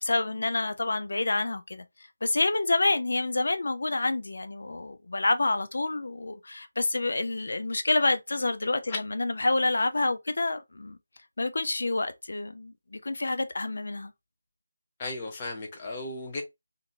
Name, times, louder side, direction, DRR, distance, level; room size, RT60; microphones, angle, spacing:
voice 1, 0.0-1.8 2.2-11.0 11.4-14.1, left 2 dB, 65° left, 0.5 m, -28 dB
voice 2, 15.0-16.4, left 2 dB, 25° left, 0.8 m, -35 dB
2.8 x 2.6 x 2.4 m
figure-of-eight pair, 165°, 0 cm